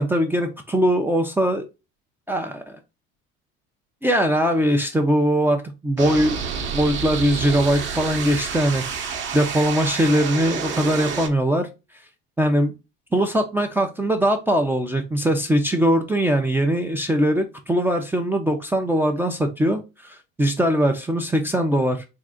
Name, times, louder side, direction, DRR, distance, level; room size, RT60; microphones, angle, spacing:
voice 1, 0.0-1.7 2.3-2.8 4.0-6.4 6.7-11.7 12.4-12.7 13.1-22.0, equal, 5° right, 3 dB, 0.4 m, -21 dB
sound 1, 6.0-11.3, right 6 dB, 40° right, 0.8 m, -29 dB
3.7 x 2.4 x 3.5 m, 0.27 s
cardioid pair, 120°, 30 cm